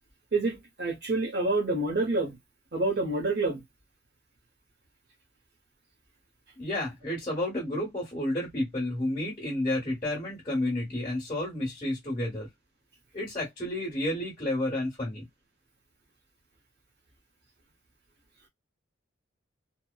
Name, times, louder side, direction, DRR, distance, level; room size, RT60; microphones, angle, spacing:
voice 1, 0.3-2.4 2.7-3.6, right 2 dB, 55° right, 0.7 m, -27 dB
voice 2, 6.6-12.5 13.1-15.3, left 1 dB, 25° left, 1.1 m, -31 dB
2.9 x 2.0 x 2.2 m
head